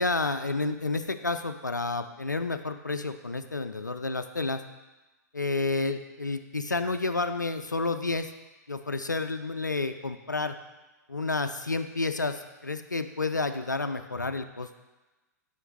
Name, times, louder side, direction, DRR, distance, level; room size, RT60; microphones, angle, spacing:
voice 1, 0.0-4.6 5.3-8.3 8.7-10.6 11.1-14.8, left 3 dB, 90° left, 9 dB, 0.4 m, -30 dB
7.6 x 5.6 x 3.2 m, 1.1 s
figure-of-eight pair, 100°, 10 cm